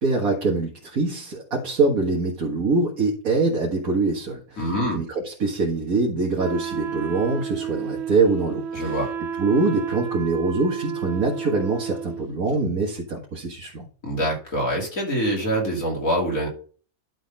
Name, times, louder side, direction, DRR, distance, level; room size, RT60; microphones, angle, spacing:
voice 1, 0.0-9.0 9.4-13.8, right 3 dB, 75° right, -1 dB, 2.1 m, -24 dB
voice 2, 4.6-5.0 8.7-9.1 14.0-16.5, equal, 65° left, -1 dB, 3.2 m, -25 dB
Wind instrument woodwind instrument, 6.4-12.3, right 8 dB, 60° right, 0.8 m, -31 dB
11.5 x 4.1 x 5.3 m, 0.40 s
omnidirectional pair, 1.5 m